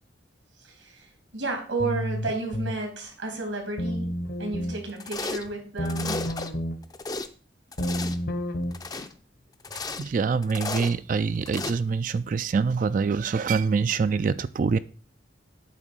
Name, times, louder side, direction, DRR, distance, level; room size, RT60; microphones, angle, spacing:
voice 1, 0.6-4.1 4.4-6.3 9.9-10.0, right 3 dB, 90° right, 3.1 m, -32 dB
sound 1, 1.8-2.8 3.8-4.8 5.8-6.8 7.8-8.8, equal, 60° left, 1.0 m, -30 dB
sound 2, 5.0-5.5 5.8-6.5 6.8-7.3 7.7-8.2 8.7-9.1 9.6-10.1 10.4-10.9 11.5-11.7, left 3 dB, 20° left, 0.5 m, -34 dB
voice 2, 10.0-14.8, right 5 dB, 45° right, 0.3 m, -25 dB
8.9 x 3.6 x 6.1 m
head